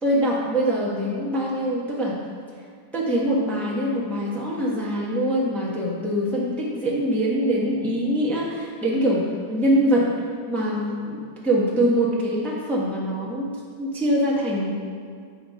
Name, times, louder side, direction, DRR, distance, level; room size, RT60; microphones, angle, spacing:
voice 1, 0.0-2.2 2.9-10.1 10.5-13.5 13.8-14.8, equal, ahead, -5 dB, 0.9 m, -23 dB
7.8 x 5.1 x 5.7 m, 2.2 s
omnidirectional pair, 2.4 m